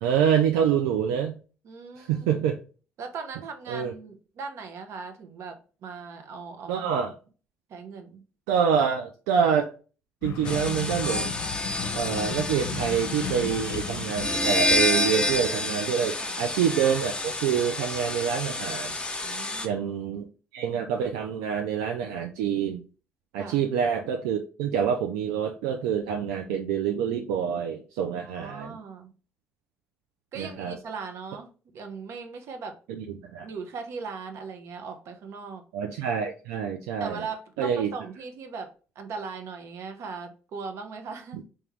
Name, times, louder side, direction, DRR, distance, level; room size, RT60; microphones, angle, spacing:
voice 1, 0.0-1.4 2.0-2.6 3.7-3.9 6.7-7.1 8.5-9.7 10.2-11.3 11.9-19.0 19.6-20.3 20.5-22.8 23.3-28.8 30.4-30.8 32.9-33.0 33.3-33.5 35.7-37.2 37.6-37.9, right 8 dB, 90° right, 0.3 m, -26 dB
voice 2, 1.6-2.4 3.0-6.9 7.7-8.2 16.2-16.5 19.2-19.8 23.4-23.6 28.2-29.1 30.3-32.8 33.4-35.7 37.0-41.4, right 5 dB, 70° right, 0.8 m, -39 dB
sound 1, 10.2-15.6, left 7 dB, 75° left, 0.5 m, -36 dB
sound 2, 10.5-19.7, left 2 dB, 20° left, 0.8 m, -29 dB
3.6 x 2.9 x 3.1 m
supercardioid pair, 60°, 5 cm